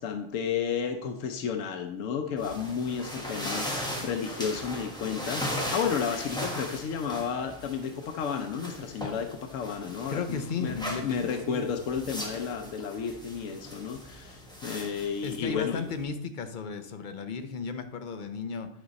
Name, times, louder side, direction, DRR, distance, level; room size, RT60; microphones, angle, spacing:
voice 1, 0.0-15.9, left 6 dB, 90° left, 6 dB, 1.0 m, -32 dB
sound 1, 2.4-16.0, equal, 5° left, 1.2 m, -38 dB
voice 2, 10.1-11.7 15.2-18.7, left 5 dB, 50° left, 7 dB, 0.7 m, -34 dB
9.6 x 5.0 x 4.0 m, 0.79 s
omnidirectional pair, 1.3 m